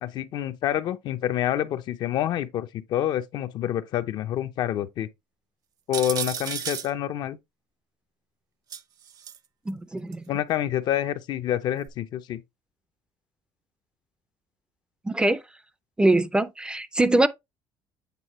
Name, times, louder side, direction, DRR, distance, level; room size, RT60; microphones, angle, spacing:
voice 1, 0.0-5.1 5.9-7.4 10.3-12.4, left 11 dB, 55° left, 0.6 m, -27 dB
sound 1, 5.9-6.9 8.7-9.4 10.1-10.2 11.9-12.0, right 9 dB, 45° right, 0.7 m, -32 dB
voice 2, 9.7-10.2 15.0-15.4 16.0-17.3, right 2 dB, 10° right, 0.4 m, -22 dB
8.3 x 3.9 x 3.0 m
cardioid pair, 125°, 9 cm